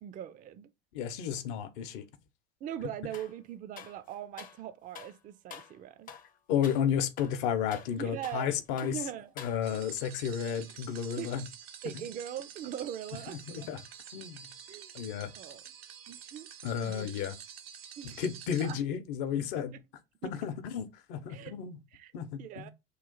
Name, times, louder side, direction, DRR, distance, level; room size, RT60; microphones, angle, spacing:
voice 1, 0.0-0.7 2.6-6.1 7.9-8.5 8.8-9.3 11.2-11.3 11.8-13.7 14.7-15.6 16.1-16.5 16.8-17.1 18.0-18.2 18.6-18.8 19.5-19.7 20.2-20.3 21.3-21.5 21.9-22.1 22.4-22.7, right 10 dB, 30° right, 0.4 m, -41 dB
voice 2, 0.9-2.0 6.5-9.0 9.4-11.5 11.9-12.0 13.3-13.8 14.1-14.5 14.9-15.3 16.6-17.3 18.0-19.7 20.2-21.8 22.1-22.7, left 8 dB, 60° left, 0.7 m, -32 dB
sound 1, 3.1-3.4 3.8-4.6 4.9-5.2 5.5-5.8 6.1-6.3 6.6-6.9 7.2-8.5 8.8-9.0 9.4-9.9, left 7 dB, 30° left, 0.6 m, -48 dB
sound 2, 9.6-18.7, right 8 dB, 75° right, 0.6 m, -48 dB
3.1 x 2.4 x 3.7 m
figure-of-eight pair, 70°, 30 cm